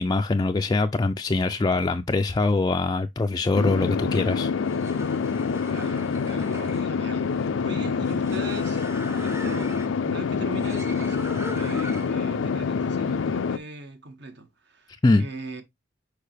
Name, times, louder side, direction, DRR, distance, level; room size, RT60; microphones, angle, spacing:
voice 1, 0.0-4.5 15.0-15.3, left 3 dB, 20° left, 0.4 m, -23 dB
sound 1, 3.5-13.6, left 5 dB, 85° left, 0.5 m, -26 dB
sound 2, 4.6-12.3, equal, 15° right, 0.7 m, -41 dB
voice 2, 5.7-9.8 10.0-15.6, right 2 dB, 60° right, 1.4 m, -40 dB
6.5 x 5.1 x 3.3 m
head